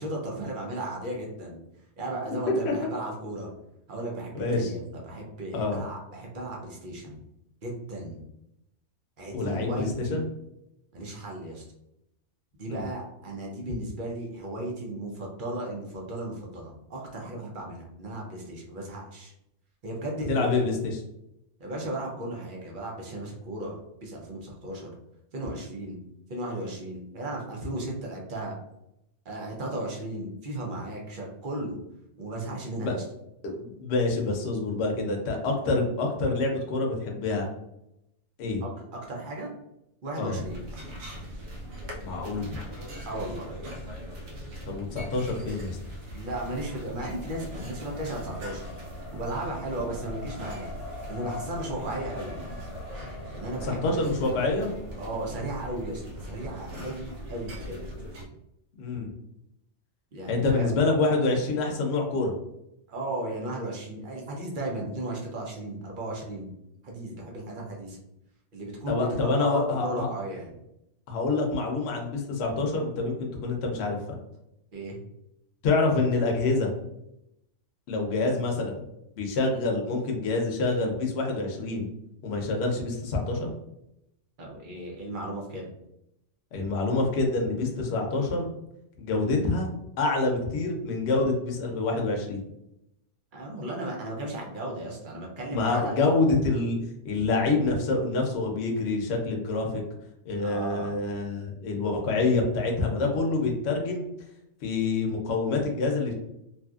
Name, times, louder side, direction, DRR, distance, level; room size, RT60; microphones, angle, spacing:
voice 1, 0.0-1.6 2.0-3.5 3.9-7.2 7.6-8.2 9.2-10.2 10.9-11.6 12.5-19.3 19.8-20.7 21.6-24.9 25.3-26.0 26.3-28.5 29.3-31.8 32.2-33.0 38.6-39.5 40.0-40.6 43.1-43.5 46.1-48.7 49.1-50.7 51.1-52.4 53.3-54.1 55.0-57.8 60.1-60.7 62.9-66.5 66.8-68.0 68.5-70.5 74.7-75.0 84.4-85.7 93.3-96.0 100.4-100.9, right 1 dB, 50° right, -1 dB, 0.7 m, -35 dB
voice 2, 4.3-4.7 5.5-5.8 9.3-10.2 12.7-12.9 20.3-21.0 32.8-33.0 33.4-37.5 38.4-38.6 40.2-40.4 42.0-42.5 44.7-45.8 53.6-54.7 58.8-59.1 60.3-62.3 68.9-70.1 71.1-74.0 75.6-76.7 77.9-78.8 79.2-81.9 82.2-83.5 86.5-88.5 89.0-89.7 90.0-92.4 95.5-96.8 97.0-99.8 100.2-104.0 104.6-106.1, left 3 dB, 65° left, 1 dB, 0.8 m, -26 dB
sound 1, 40.4-58.3, equal, 85° right, 1.0 m, -40 dB
Race car auto racing, 46.7-55.6, left 3 dB, 30° left, 0.9 m, -45 dB
2.7 x 2.5 x 2.3 m, 0.83 s
omnidirectional pair, 1.2 m